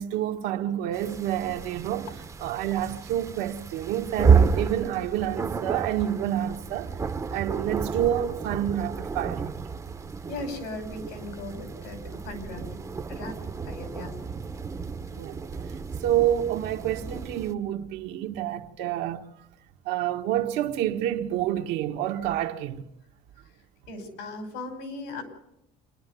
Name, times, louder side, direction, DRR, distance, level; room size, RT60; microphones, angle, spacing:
voice 1, 0.0-2.1 2.4-6.9 7.3-9.6 15.1-15.7 16.0-19.2 19.8-22.9, right 11 dB, 80° right, 1.5 m, -28 dB
sound 1, 0.9-17.5, right 5 dB, 20° right, 0.7 m, -30 dB
voice 2, 10.3-12.8 13.1-14.2 23.4-23.5 23.9-25.2, left 2 dB, 85° left, 5.3 m, -38 dB
27.5 x 11.0 x 9.3 m
cardioid pair, 130°, 17 cm